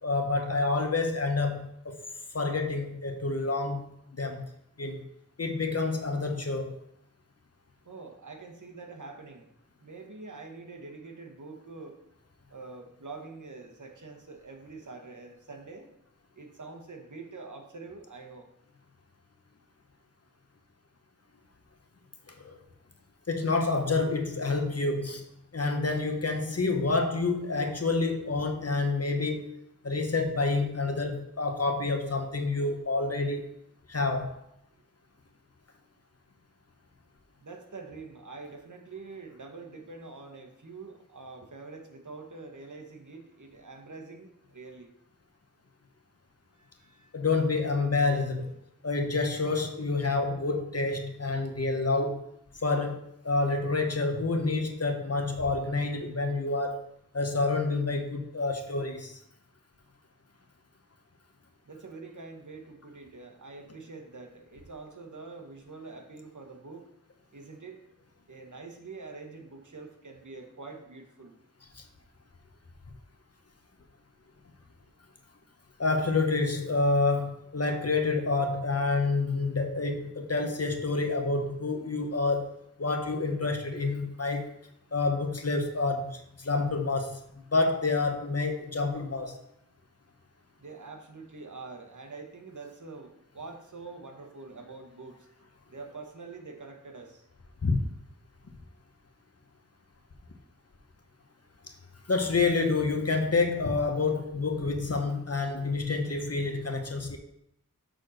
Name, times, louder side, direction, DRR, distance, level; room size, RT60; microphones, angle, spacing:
voice 1, 0.0-2.0 2.3-3.9 4.1-4.4 4.8-5.0 5.4-6.7 22.4-22.6 23.3-25.2 25.5-29.5 29.8-33.4 33.9-34.3 47.1-48.5 48.8-52.2 52.5-56.8 57.1-59.2 71.7-71.8 75.8-82.5 82.8-84.5 84.9-87.2 87.5-89.4 97.6-97.8 102.1-107.2, left 3 dB, 45° left, 5 dB, 0.9 m, -28 dB
voice 2, 7.8-9.5 9.8-12.0 12.5-15.9 16.3-18.5 37.4-44.9 46.6-47.1 61.7-66.9 67.3-67.8 68.3-71.4 90.6-95.2 95.7-97.3, right 3 dB, 60° right, 3 dB, 1.2 m, -45 dB
6.4 x 4.1 x 6.4 m, 0.79 s
wide cardioid pair, 60°, 34 cm